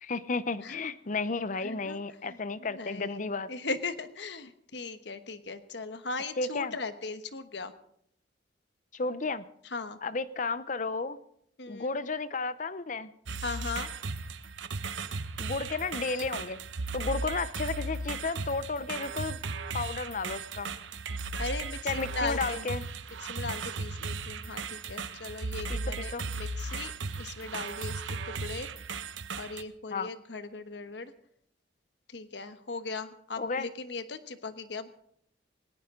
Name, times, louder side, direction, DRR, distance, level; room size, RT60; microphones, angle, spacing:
voice 1, 0.0-3.5 6.4-6.7 8.9-9.4 10.0-11.2 11.7-13.1 15.4-16.6 16.9-19.4 19.7-20.7 21.8-22.8 25.7-26.2 29.9-30.1 33.4-33.7, left 3 dB, 45° left, 15 dB, 0.7 m, -33 dB
voice 2, 1.6-7.7 9.7-10.0 11.6-11.9 13.4-13.9 21.4-22.7 23.2-26.9 27.2-28.7 29.4-31.1 32.1-34.9, left 3 dB, 65° left, 10 dB, 1.2 m, -38 dB
sound 1, 13.3-29.6, right 3 dB, 85° right, 0.9 m, -36 dB
18.5 x 18.0 x 3.8 m, 0.69 s
head